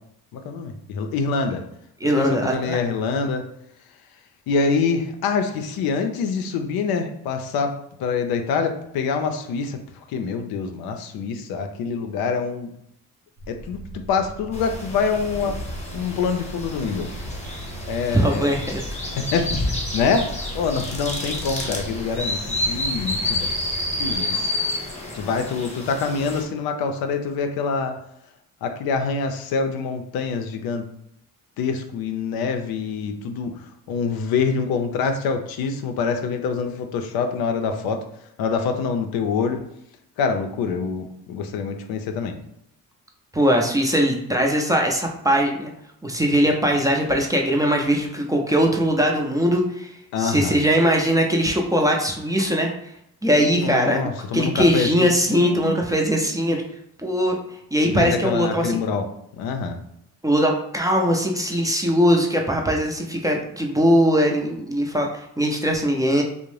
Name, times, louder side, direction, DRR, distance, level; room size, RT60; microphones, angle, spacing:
voice 1, 0.3-1.6 2.2-3.4 4.5-7.7 8.0-9.8 10.1-12.7 13.5-15.6 15.9-17.1 17.9-18.5 19.1-20.3 20.5-23.5 24.0-24.5 25.1-27.9 28.6-30.9 31.6-33.6 33.9-38.0 38.4-39.6 40.2-42.3 50.1-50.6 53.5-55.7 57.8-59.1 59.3-59.8, left 5 dB, 80° left, 6 dB, 0.5 m, -25 dB
voice 2, 2.0-2.8 18.1-18.8 43.3-45.7 46.0-49.9 50.2-52.7 53.2-56.6 57.0-57.4 57.7-58.8 60.2-66.2, equal, 10° right, 0 dB, 0.4 m, -20 dB
sound 1, 13.4-24.2, right 2 dB, 85° right, 0.6 m, -38 dB
sound 2, 14.5-26.4, left 2 dB, 20° left, 0.8 m, -29 dB
2.5 x 2.0 x 3.1 m, 0.77 s
cardioid pair, 90°, 35 cm